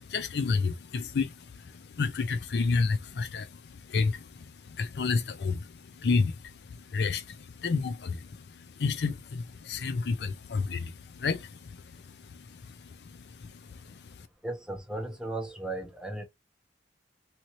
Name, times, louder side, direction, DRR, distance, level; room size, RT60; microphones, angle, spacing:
voice 1, 0.0-14.3, left 4 dB, 65° left, 0.4 m, -31 dB
voice 2, 14.4-16.2, right 2 dB, 5° right, 0.8 m, -36 dB
2.9 x 2.6 x 2.9 m
head